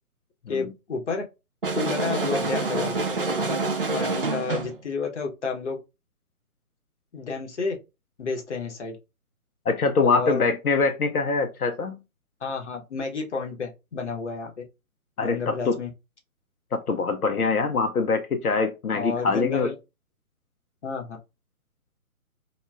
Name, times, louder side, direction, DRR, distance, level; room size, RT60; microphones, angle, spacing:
voice 1, 0.5-1.2 1.7-3.5 3.9-5.8 7.1-7.8 8.2-9.0 10.0-10.5 12.4-14.6 15.2-15.9 18.9-19.7 20.8-21.2, left 4 dB, 55° left, 0.8 m, -31 dB
sound 1, 1.6-4.8, right 3 dB, 40° right, 0.4 m, -27 dB
voice 2, 9.7-12.0 15.2-15.8 16.7-19.7, left 4 dB, 85° left, 0.6 m, -24 dB
2.2 x 2.2 x 3.2 m
figure-of-eight pair, 140°, 43 cm